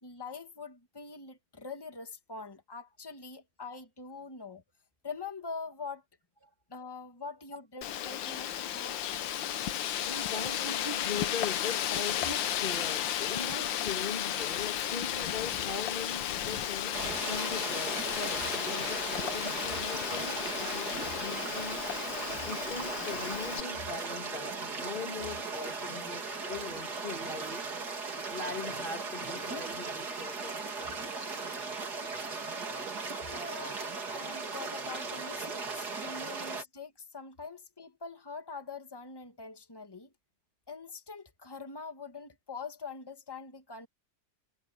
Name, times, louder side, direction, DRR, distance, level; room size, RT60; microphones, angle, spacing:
voice 1, 0.0-4.6 5.0-6.0 6.7-9.0 33.1-33.8 34.1-40.1 40.7-43.9, left 4 dB, 10° left, 2.2 m, -44 dB
Wind, 7.8-23.6, left 11 dB, 80° left, 1.6 m, -34 dB
voice 2, 10.0-21.8 22.4-27.7 28.3-31.0 33.2-33.3, left 4 dB, 30° left, 2.1 m, -41 dB
sound 1, 16.9-36.6, right 4 dB, 60° right, 3.1 m, -37 dB
omnidirectional pair, 2.0 m